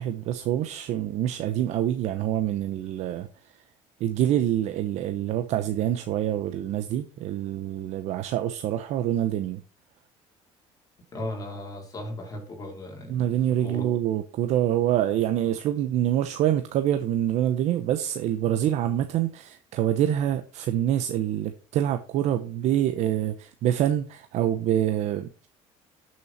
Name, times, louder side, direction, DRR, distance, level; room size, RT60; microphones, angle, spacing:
voice 1, 0.0-3.3 4.0-9.6 13.1-25.5, right 11 dB, 60° right, 0.9 m, -26 dB
voice 2, 11.1-13.9, left 1 dB, 30° left, 3.9 m, -37 dB
12.5 x 6.3 x 4.3 m
cardioid pair, 130°, 13 cm